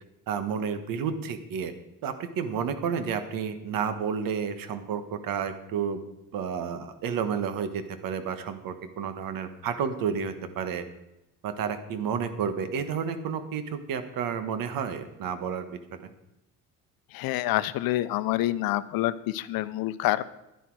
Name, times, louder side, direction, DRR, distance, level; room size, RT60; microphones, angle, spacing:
voice 1, 0.3-1.7 2.0-6.0 6.3-10.8 11.4-15.6 16.0-16.1, right 7 dB, 70° right, 9 dB, 1.3 m, -31 dB
voice 2, 17.1-20.2, left 15 dB, 80° left, 15 dB, 0.7 m, -27 dB
11.0 x 10.0 x 4.7 m, 0.90 s
cardioid pair, 110°, 35 cm